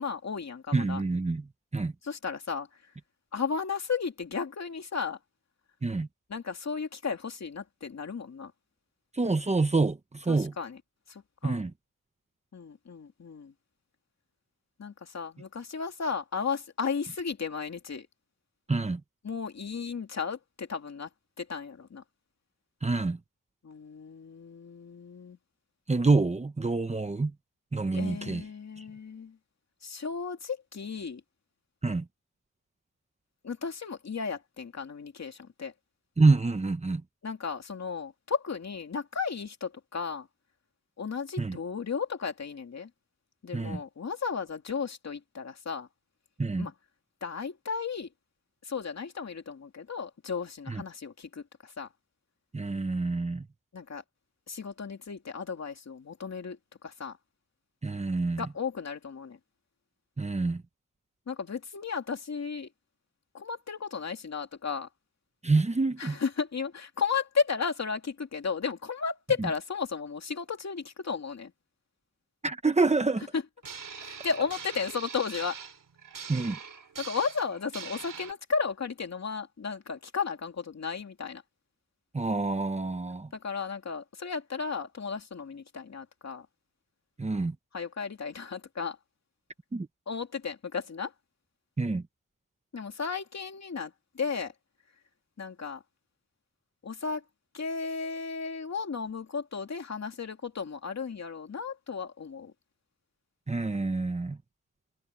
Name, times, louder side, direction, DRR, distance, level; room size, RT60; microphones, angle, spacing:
voice 1, 0.0-1.0 2.0-2.8 3.3-5.2 6.3-8.5 10.3-10.8 11.1-11.6 12.5-13.5 14.8-18.1 19.2-21.1 21.4-22.0 23.6-25.4 27.9-29.4 29.8-31.2 33.4-35.7 37.2-40.3 41.0-42.9 43.4-45.9 46.6-46.7 47.2-48.1 48.6-51.9 53.7-54.0 54.5-57.2 58.4-59.4 61.3-62.7 63.3-64.9 66.0-71.5 73.3-73.4 74.0-75.6 77.0-81.4 83.3-86.5 87.7-89.0 90.1-91.1 92.7-94.5 95.4-95.8 96.8-97.2 97.5-102.5, left 5 dB, 55° left, 2.7 m, -34 dB
voice 2, 0.7-1.4 1.7-1.9 5.8-6.1 9.1-10.5 11.4-11.7 18.7-19.0 22.8-23.2 25.9-27.3 27.7-28.4 28.8-28.9 31.8-32.0 36.2-37.0 41.4-41.6 43.5-43.8 46.4-46.7 50.7-50.8 52.5-53.4 57.8-58.5 60.2-60.6 65.4-66.2 72.4-73.2 76.3-76.6 82.1-83.3 87.2-87.5 89.7-89.9 91.8-92.0 103.5-104.4, right 3 dB, 20° right, 1.0 m, -27 dB
sound 1, 73.6-78.3, right 6 dB, 75° right, 4.8 m, -43 dB
wide cardioid pair, 170°, 32 cm